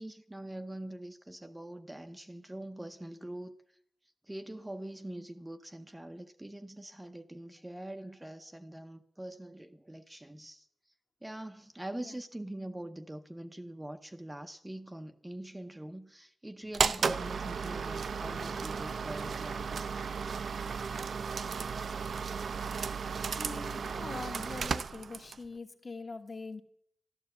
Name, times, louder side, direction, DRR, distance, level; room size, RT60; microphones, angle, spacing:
voice 1, 0.0-3.6 4.3-10.7 11.2-19.8, right 1 dB, 10° right, 0.7 m, -43 dB
sound 1, 16.7-25.5, right 5 dB, 65° right, 0.6 m, -34 dB
voice 2, 23.4-26.6, left 3 dB, 35° left, 1.2 m, -43 dB
13.0 x 12.5 x 8.0 m
wide cardioid pair, 145°, 0 cm